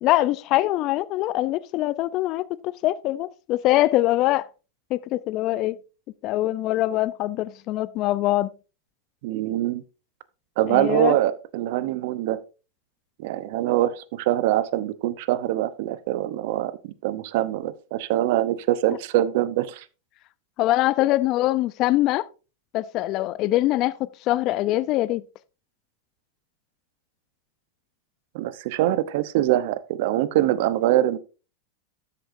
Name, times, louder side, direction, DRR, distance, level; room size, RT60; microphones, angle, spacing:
voice 1, 0.0-4.4 4.9-5.8 6.2-8.5 10.7-11.2 20.6-22.3 22.7-23.9 24.2-25.2, left 16 dB, 45° left, 0.6 m, -23 dB
voice 2, 9.2-9.8 10.6-12.4 13.2-19.8 28.3-31.2, right 14 dB, 60° right, 0.8 m, -24 dB
12.5 x 8.4 x 2.6 m
hypercardioid pair, 95°, 0 cm